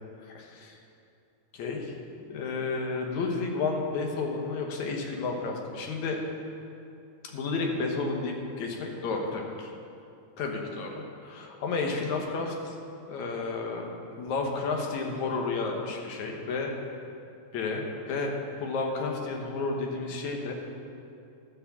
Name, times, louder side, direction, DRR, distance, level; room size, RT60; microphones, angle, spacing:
voice 1, 0.2-0.8 1.5-1.9 2.3-6.2 7.2-9.7 10.4-10.9 11.2-12.8 13.1-13.9 14.2-16.7 17.5-18.3 18.6-20.5, left 3 dB, 70° left, 1 dB, 2.5 m, -31 dB
12.0 x 6.1 x 7.1 m, 2.6 s
omnidirectional pair, 3.6 m